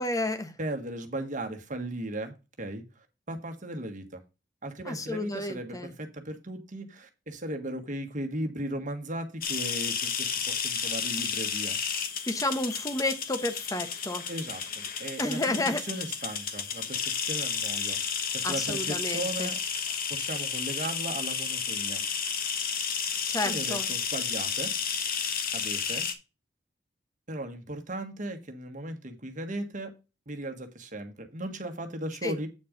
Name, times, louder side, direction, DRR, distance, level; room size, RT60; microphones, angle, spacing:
voice 1, 0.0-0.5 4.8-5.9 12.3-14.3 15.2-15.8 18.4-19.5 23.3-23.9 32.2-32.3, left 2 dB, 20° left, 1.0 m, -31 dB
voice 2, 0.6-4.2 4.6-11.8 14.3-18.0 18.3-19.8 20.1-22.0 23.4-24.7 25.5-26.1 27.3-29.9 30.3-32.5, right 1 dB, 45° right, 1.5 m, -37 dB
sound 1, 9.4-26.1, left 6 dB, 55° left, 1.2 m, -32 dB
8.6 x 4.3 x 5.1 m
head